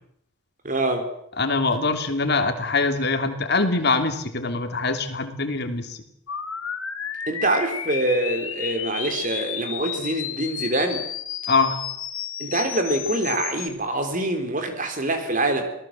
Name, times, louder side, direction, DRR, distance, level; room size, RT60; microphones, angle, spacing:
voice 1, 0.6-1.1 7.3-11.0 12.4-15.6, right 2 dB, 40° right, 7 dB, 3.8 m, -25 dB
voice 2, 1.4-6.0 11.5-11.8, left 3 dB, 50° left, 6 dB, 3.0 m, -23 dB
sound 1, 6.3-13.7, left 9 dB, 80° left, 3.0 m, -32 dB
27.5 x 18.5 x 7.5 m, 0.75 s
head